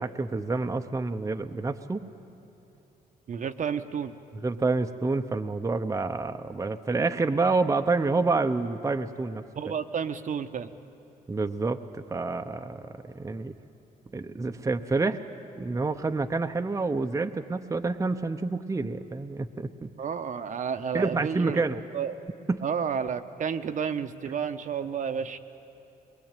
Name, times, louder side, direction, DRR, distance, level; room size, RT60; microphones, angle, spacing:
voice 1, 0.0-2.0 4.4-9.7 11.3-13.5 14.1-15.2 15.6-19.9 20.9-21.8 22.5-22.6, right 3 dB, 20° right, 6 dB, 0.8 m, -28 dB
voice 2, 3.3-4.1 9.6-10.7 20.0-21.6 21.9-22.2 22.6-25.4, right 7 dB, 50° right, 8 dB, 1.0 m, -31 dB
22.5 x 22.0 x 9.0 m, 2.8 s
cardioid pair, 100°, 16 cm